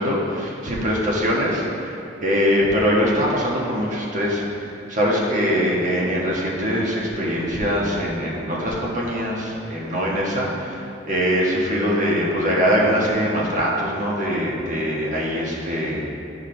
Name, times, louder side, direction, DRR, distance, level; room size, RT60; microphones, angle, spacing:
voice 1, 0.0-16.0, equal, 40° right, -4 dB, 1.4 m, -22 dB
12.0 x 4.9 x 3.3 m, 2.6 s
head